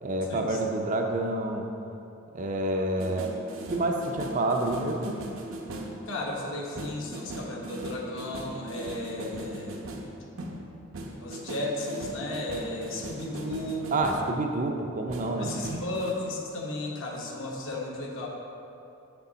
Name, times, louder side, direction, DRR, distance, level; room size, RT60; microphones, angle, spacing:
voice 1, 0.0-1.7 2.3-3.3 3.7-5.2 13.9-15.5, right 2 dB, 35° right, 3 dB, 0.5 m, -28 dB
sound 1, 3.0-6.1 6.8-14.3 15.1-16.1, right 1 dB, 65° right, 0.8 m, -39 dB
voice 2, 6.0-10.0 11.2-13.9 15.4-18.3, left 1 dB, 65° left, -2 dB, 1.1 m, -34 dB
6.7 x 6.4 x 4.0 m, 2.7 s
head